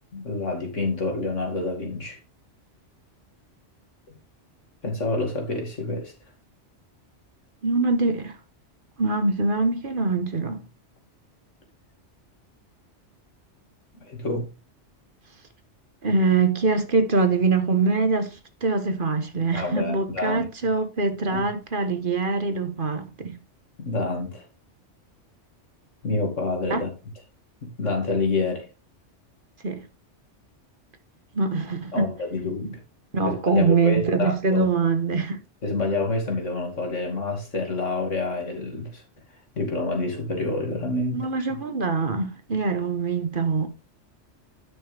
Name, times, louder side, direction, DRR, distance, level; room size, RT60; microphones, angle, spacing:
voice 1, 0.1-2.2 4.8-6.1 14.0-14.5 19.5-20.5 21.3-21.5 23.8-24.5 26.0-26.9 27.6-28.7 31.9-32.8 33.3-34.6 35.6-39.0 39.6-41.6, left 2 dB, 85° left, 2.8 m, -28 dB
voice 2, 7.6-8.3 9.0-10.6 16.0-23.4 26.7-26.8 29.6-29.8 31.3-32.1 33.1-35.4 41.1-43.7, right 4 dB, 45° right, 1.3 m, -23 dB
10.0 x 6.3 x 3.4 m
omnidirectional pair, 1.2 m